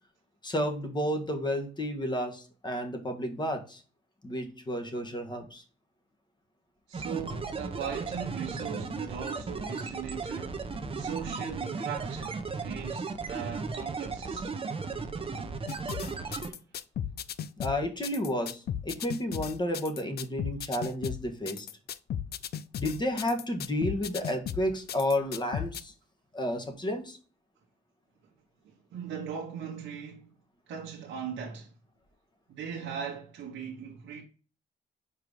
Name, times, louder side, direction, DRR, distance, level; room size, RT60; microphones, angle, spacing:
voice 1, 0.4-3.8 4.2-5.6 17.6-21.7 22.8-25.9 26.3-27.2, left 1 dB, 20° left, 1.6 m, -31 dB
sound 1, 6.9-16.5, right 4 dB, 25° right, 1.0 m, -35 dB
voice 2, 6.9-10.7 10.9-14.6 28.6-30.3 30.7-31.7 32.5-34.2, right 7 dB, 75° right, 1.3 m, -39 dB
sound 2, 15.7-25.8, left 9 dB, 55° left, 0.5 m, -36 dB
4.8 x 4.7 x 5.2 m
cardioid pair, 90°, 20 cm